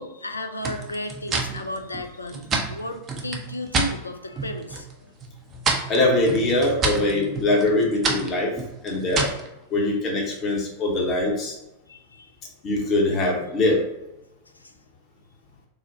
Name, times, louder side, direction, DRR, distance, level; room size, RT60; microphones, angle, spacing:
voice 1, 0.0-4.9 11.9-12.3 14.5-14.7, left 1 dB, 80° left, 6 dB, 0.3 m, -34 dB
sound 1, 0.6-3.9 4.3-4.9 5.2-9.5, right 3 dB, 25° right, 0.5 m, -28 dB
voice 2, 5.9-8.5 8.8-9.2 9.7-11.6 12.6-13.8, left 2 dB, 30° left, -1 dB, 0.8 m, -22 dB
3.7 x 2.1 x 2.7 m, 0.94 s
figure-of-eight pair, 90°, 0 cm